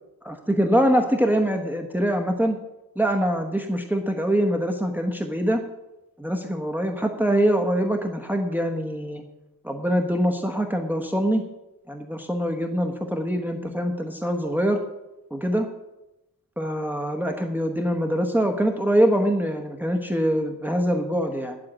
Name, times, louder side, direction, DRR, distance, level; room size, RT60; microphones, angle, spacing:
voice 1, 0.2-2.6 3.0-5.6 6.2-9.2 9.6-11.4 11.9-14.8 15.3-15.7 16.6-21.6, equal, 5° right, 4 dB, 1.1 m, -24 dB
9.6 x 7.9 x 8.7 m, 0.94 s
wide cardioid pair, 130°, 34 cm